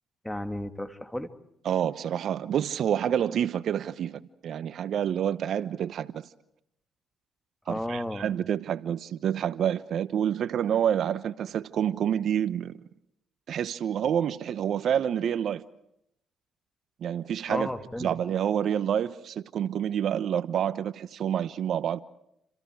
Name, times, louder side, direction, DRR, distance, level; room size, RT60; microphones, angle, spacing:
voice 1, 0.2-1.3 7.7-8.2 17.5-18.1, left 1 dB, 10° left, 2.5 m, -33 dB
voice 2, 1.6-6.3 7.7-12.8 13.5-15.6 17.0-17.7 18.0-22.0, right 9 dB, 65° right, 1.0 m, -28 dB
29.5 x 27.5 x 4.8 m
supercardioid pair, 70°, 0 cm